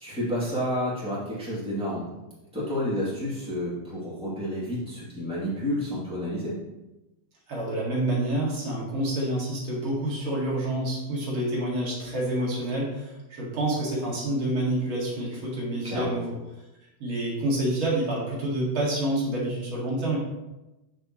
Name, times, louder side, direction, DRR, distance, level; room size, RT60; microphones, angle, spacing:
voice 1, 0.0-2.1 2.5-6.5 15.9-16.2, equal, 5° right, -8 dB, 2.5 m, -30 dB
voice 2, 7.5-16.3 17.0-20.2, right 1 dB, 80° right, -6 dB, 3.0 m, -28 dB
8.0 x 6.7 x 3.1 m, 1.0 s
omnidirectional pair, 2.2 m